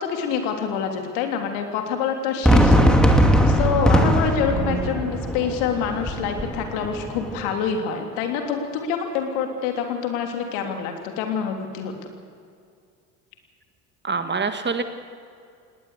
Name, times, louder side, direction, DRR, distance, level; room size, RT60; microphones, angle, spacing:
voice 1, 0.0-3.0 3.5-12.1, left 7 dB, 65° left, 4 dB, 3.4 m, -26 dB
Fireworks, 2.4-7.5, equal, ahead, 2.6 m, -19 dB
voice 2, 4.5-5.0 14.0-14.8, right 4 dB, 25° right, 9 dB, 1.8 m, -26 dB
19.0 x 18.5 x 8.3 m, 2.3 s
hypercardioid pair, 65°, 45 cm